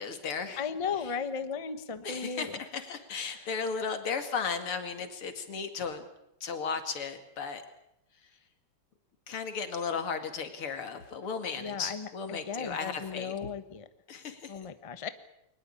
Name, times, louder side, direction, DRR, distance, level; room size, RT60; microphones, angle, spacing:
voice 1, 0.0-0.6 1.0-1.1 2.0-6.1 6.4-7.6 8.2-8.4 9.3-13.3 14.1-14.7, left 5 dB, 90° left, 8 dB, 3.2 m, -35 dB
voice 2, 0.6-2.6 11.5-13.9 14.5-15.1, left 6 dB, 20° left, 11 dB, 0.9 m, -36 dB
22.5 x 20.5 x 8.6 m, 0.82 s
omnidirectional pair, 2.3 m